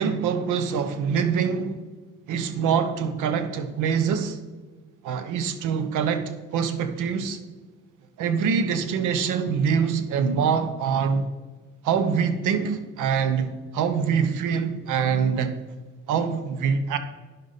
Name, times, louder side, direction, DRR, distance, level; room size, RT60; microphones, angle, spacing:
voice 1, 0.0-1.8 2.3-4.4 5.0-7.4 8.2-11.3 11.8-15.6 16.1-17.0, right 6 dB, 85° right, 0.9 m, -24 dB
10.5 x 6.6 x 4.1 m
cardioid pair, 90°, 30 cm